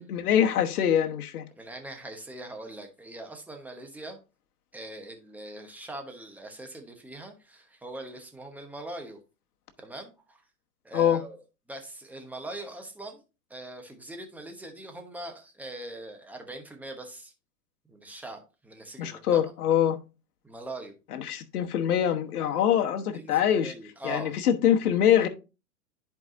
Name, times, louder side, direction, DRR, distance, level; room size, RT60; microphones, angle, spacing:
voice 1, 0.0-1.4 10.9-11.2 19.0-20.0 21.1-23.7 24.0-25.3, left 9 dB, 70° left, 1.2 m, -24 dB
voice 2, 1.6-4.2 4.7-9.2 9.8-10.4 10.8-11.4 11.7-13.2 13.5-17.3 17.9-19.4 20.4-20.9 23.1-24.4, right 1 dB, 5° right, 1.0 m, -42 dB
10.5 x 4.8 x 2.6 m
hypercardioid pair, 125°, 47 cm